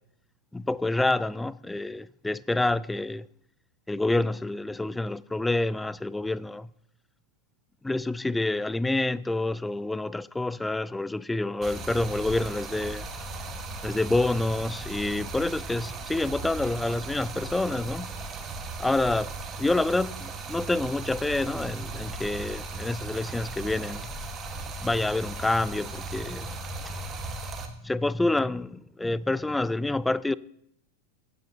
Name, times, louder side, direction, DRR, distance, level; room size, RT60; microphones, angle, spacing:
voice 1, 0.5-3.3 3.9-6.7 7.8-13.1 13.8-18.1 18.8-24.1 24.8-26.5 27.3-27.4 27.7-30.4, left 2 dB, 5° left, 0.3 m, -28 dB
Stream, 11.6-27.7, right 3 dB, 25° right, 1.4 m, -37 dB
16.0 x 8.8 x 2.8 m
figure-of-eight pair, 90°, 0 cm